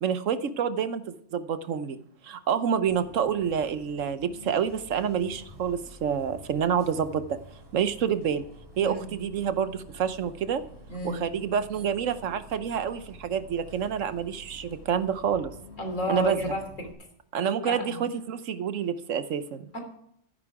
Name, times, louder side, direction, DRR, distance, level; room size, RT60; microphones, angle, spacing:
voice 1, 0.0-2.0 2.2-7.4 7.7-8.4 8.8-10.6 11.0-15.5 16.1-16.5 17.3-19.6, right 7 dB, 80° right, 12 dB, 1.2 m, -28 dB
Bus, 2.9-16.9, equal, 20° right, 3.5 m, -49 dB
voice 2, 8.8-9.2 10.9-11.2 15.8-16.6 17.6-18.1 19.7-19.8, left 1 dB, 75° left, 4 dB, 3.6 m, -32 dB
13.5 x 10.5 x 4.7 m, 0.72 s
omnidirectional pair, 1.3 m